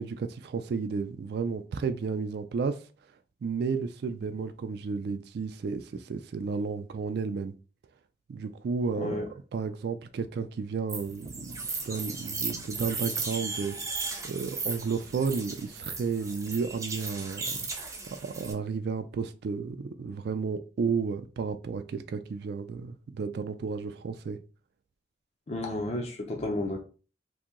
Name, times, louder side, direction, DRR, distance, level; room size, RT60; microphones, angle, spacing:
voice 1, 0.0-2.8 3.4-7.5 8.3-13.8 14.2-17.9 18.2-24.4, right 5 dB, 60° right, 0.3 m, -32 dB
voice 2, 8.9-9.3 25.5-26.8, left 1 dB, 35° left, 0.5 m, -32 dB
sound 1, 10.9-18.5, right 4 dB, 15° right, 0.6 m, -36 dB
2.8 x 2.6 x 3.6 m
head